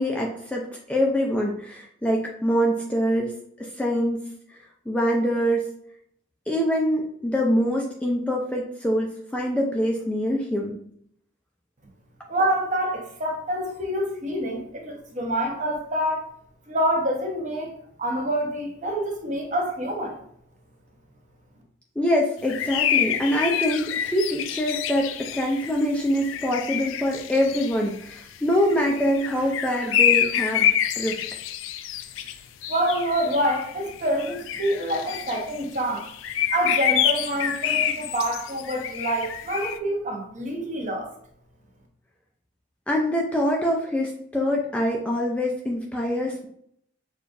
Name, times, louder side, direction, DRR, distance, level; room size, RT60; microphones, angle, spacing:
voice 1, 0.0-4.2 4.5-4.6 4.9-5.7 6.5-10.7 22.0-31.2 42.9-46.5, equal, 5° left, -1 dB, 0.4 m, -24 dB
voice 2, 12.3-16.3 16.7-17.7 18.0-20.2 32.7-36.1 36.5-41.1, right 1 dB, 40° right, 0 dB, 0.9 m, -26 dB
sound 1, 22.5-28.2 28.5-39.8, left 9 dB, 75° left, 0.3 m, -27 dB
6.3 x 2.4 x 2.6 m, 0.68 s
head